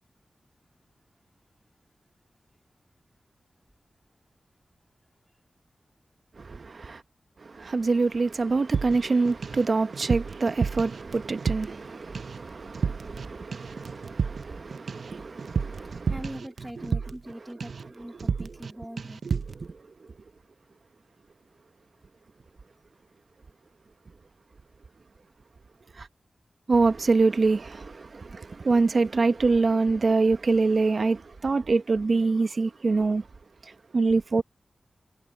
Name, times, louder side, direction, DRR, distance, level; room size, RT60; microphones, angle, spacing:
voice 1, 6.4-7.0 7.4-16.2 16.8-16.9 19.2-19.8 26.0-26.1 26.7-33.2 33.6-34.4, right 3 dB, 55° right, 0.9 m, -25 dB
sound 1, 8.7-9.6 9.9-11.9 12.1-12.4 12.7-13.3 13.5-17.3 17.6-17.9 18.2-18.7 19.0-19.6, right 5 dB, 75° right, 0.5 m, -31 dB
voice 2, 16.1-19.2, equal, 5° right, 2.3 m, -41 dB
wide cardioid pair, 115°, 0 cm